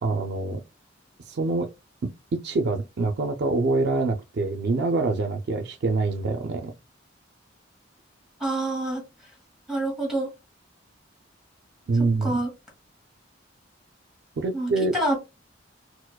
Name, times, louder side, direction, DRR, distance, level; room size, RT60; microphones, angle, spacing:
voice 1, 0.0-0.6 1.3-1.7 2.3-6.7 11.9-12.3 14.4-14.9, right 3 dB, 60° right, 0.4 m, -25 dB
voice 2, 8.4-9.0 9.7-10.3 12.2-12.5 14.5-15.2, right 2 dB, ahead, 1.7 m, -26 dB
4.4 x 2.0 x 2.3 m
head